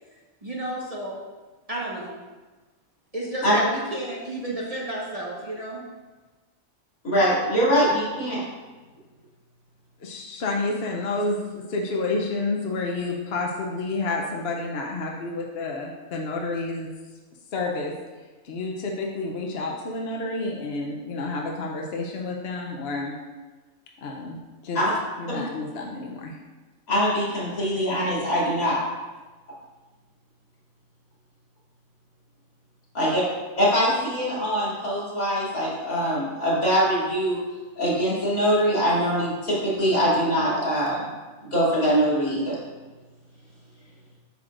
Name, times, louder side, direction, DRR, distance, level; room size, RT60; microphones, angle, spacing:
voice 1, 0.4-1.2 1.7-2.1 3.1-5.8, right 1 dB, 30° right, -4 dB, 1.2 m, -31 dB
voice 2, 7.0-8.4 24.7-24.9 26.9-28.8 32.9-33.2 33.6-37.4 37.8-41.0 41.4-42.5, equal, 90° left, -7 dB, 3.0 m, -23 dB
voice 3, 10.0-16.9 17.5-17.9 18.4-23.2 24.0-24.8 25.2-26.4, left 3 dB, 55° left, 0 dB, 0.9 m, -29 dB
8.4 x 6.3 x 2.5 m, 1.3 s
omnidirectional pair, 1.4 m